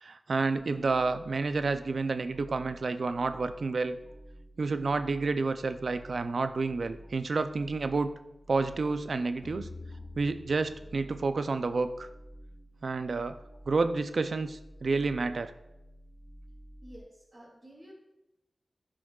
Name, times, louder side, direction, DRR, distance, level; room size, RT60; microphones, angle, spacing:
voice 1, 0.0-4.0 4.6-8.1 8.5-9.7 10.2-12.1 12.8-13.4 13.7-15.5, right 3 dB, 75° right, 10 dB, 0.4 m, -30 dB
sound 1, 0.5-17.0, equal, 90° left, 1.3 m, -52 dB
sound 2, 9.4-12.7, left 3 dB, 70° left, 0.6 m, -48 dB
voice 2, 16.8-17.9, equal, 45° right, -7 dB, 2.2 m, -51 dB
11.0 x 5.0 x 2.3 m, 0.92 s
cardioid pair, 50°, 0 cm